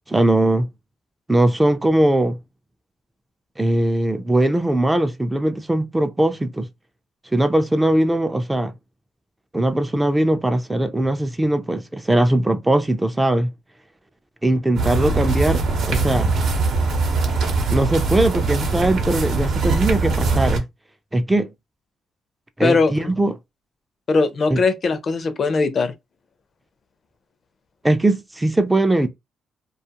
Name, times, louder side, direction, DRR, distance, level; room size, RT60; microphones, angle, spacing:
voice 1, 0.1-0.7 1.3-2.4 3.6-6.7 7.3-8.7 9.5-13.5 14.4-16.3 17.7-20.6 21.1-21.5 22.6-23.3 24.5-24.6 27.8-29.1, right 1 dB, 10° right, 0.4 m, -20 dB
sound 1, 14.7-20.6, right 3 dB, 70° right, 0.8 m, -21 dB
voice 2, 22.6-23.1 24.1-25.9, left 4 dB, 45° left, 0.5 m, -20 dB
2.4 x 2.3 x 2.8 m
cardioid pair, 90°, 0 cm